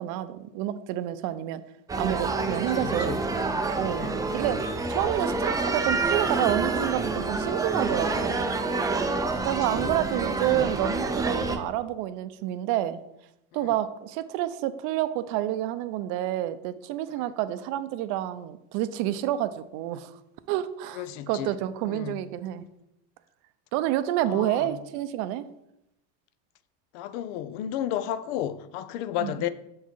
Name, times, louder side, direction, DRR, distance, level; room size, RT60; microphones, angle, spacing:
voice 1, 0.0-1.6 2.0-3.2 3.8-4.1 4.3-4.6 4.9-8.4 9.4-13.0 13.5-20.1 20.5-22.7 23.7-25.5 29.2-29.5, right 13 dB, 60° right, 0.6 m, -29 dB
sound 1, 1.9-11.6, right 3 dB, 10° right, 0.5 m, -28 dB
voice 2, 2.7-3.2 3.9-4.2 9.6-10.0 10.4-10.7 13.6-13.7 17.2-17.3 20.9-21.5 21.9-22.2 24.3-24.7 26.9-29.5, left 11 dB, 65° left, 0.6 m, -33 dB
6.7 x 4.7 x 4.4 m
supercardioid pair, 120°, 35 cm